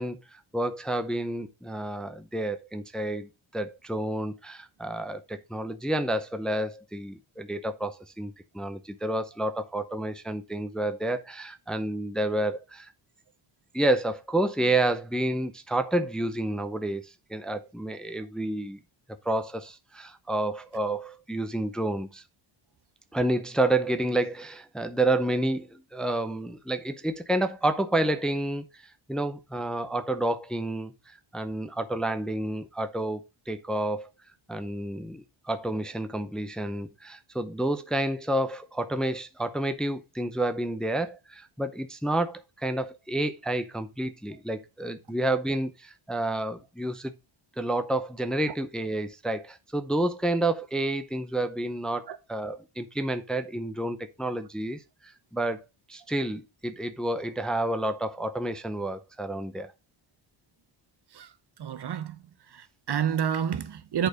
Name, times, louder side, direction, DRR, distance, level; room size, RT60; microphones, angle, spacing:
voice 1, 0.0-12.9 13.7-18.8 19.2-22.2 23.1-28.7 29.1-34.1 34.5-47.1 47.6-55.6 55.9-59.7, right 1 dB, ahead, 0.6 m, -29 dB
voice 2, 61.6-62.2 62.5-64.1, right 8 dB, 55° right, 0.9 m, -29 dB
7.9 x 4.4 x 5.0 m
cardioid pair, 105°, 49 cm